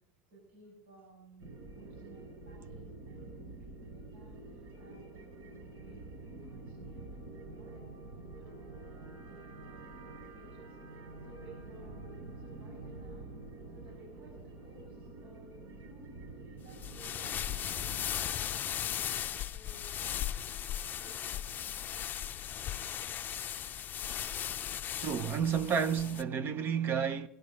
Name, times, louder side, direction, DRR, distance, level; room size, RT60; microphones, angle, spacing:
voice 1, 0.3-7.2 7.5-7.9 8.4-13.4 13.7-20.2 20.7-21.2, right 2 dB, 85° right, 6.9 m, -58 dB
sound 1, 1.4-18.1, right 2 dB, 55° right, 5.3 m, -48 dB
sound 2, 16.7-26.2, left 10 dB, 35° left, 0.6 m, -37 dB
voice 2, 25.0-27.3, right 7 dB, 35° right, 0.8 m, -31 dB
15.5 x 12.0 x 6.4 m
supercardioid pair, 125°, 6 cm